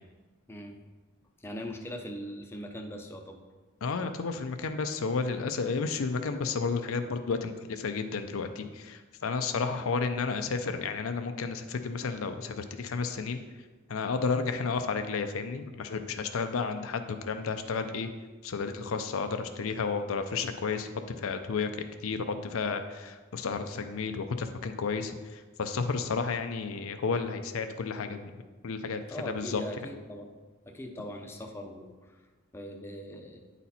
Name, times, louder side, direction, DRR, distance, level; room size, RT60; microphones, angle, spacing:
voice 1, 0.5-0.8 1.4-3.4 29.1-30.3 30.7-32.2 32.5-33.4, equal, 10° left, 3 dB, 0.6 m, -41 dB
voice 2, 3.8-13.4 13.9-18.1 18.4-20.9 21.2-21.7 22.0-29.6, left 4 dB, 75° left, 8 dB, 0.5 m, -32 dB
9.0 x 4.2 x 4.2 m, 1.3 s
head